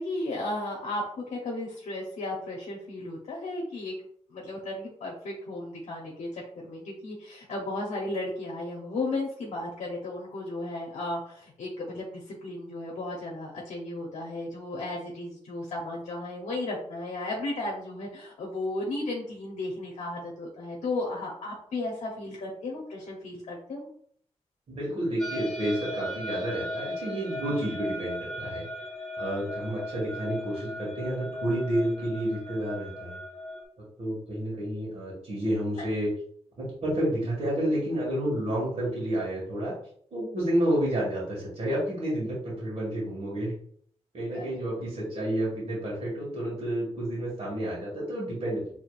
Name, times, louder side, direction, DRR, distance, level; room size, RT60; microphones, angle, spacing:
voice 1, 0.0-3.9 4.3-23.8 35.8-35.9 44.3-44.6, left 2 dB, 85° left, -3 dB, 0.9 m, -34 dB
voice 2, 24.8-28.7 29.2-33.2 34.0-36.1 36.6-39.7 40.1-43.6 44.1-48.8, right 1 dB, 60° right, -6 dB, 1.9 m, -30 dB
sound 1, 25.2-33.6, left 1 dB, ahead, 1.4 m, -37 dB
5.1 x 3.4 x 2.5 m, 0.63 s
cardioid pair, 95°, 12 cm